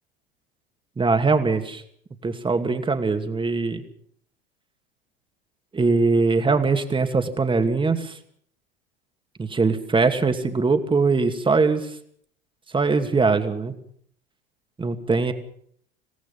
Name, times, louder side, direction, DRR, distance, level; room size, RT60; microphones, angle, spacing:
voice 1, 1.0-1.8 2.2-3.8 5.7-8.1 9.4-11.9 12.7-13.7 14.8-15.3, right 4 dB, 15° right, 7 dB, 2.5 m, -21 dB
27.0 x 17.5 x 5.6 m, 0.63 s
hypercardioid pair, 75°, 29 cm